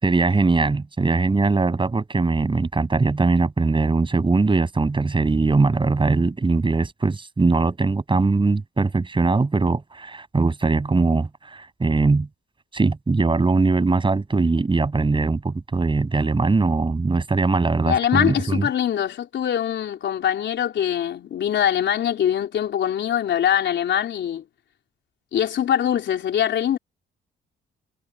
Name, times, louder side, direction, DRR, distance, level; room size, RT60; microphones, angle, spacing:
voice 1, 0.0-12.3 12.7-18.6, right 3 dB, 25° right, 7.9 m, -21 dB
voice 2, 17.9-24.4 25.3-26.8, left 10 dB, 65° left, 3.8 m, -23 dB
cardioid pair, 90°, 20 cm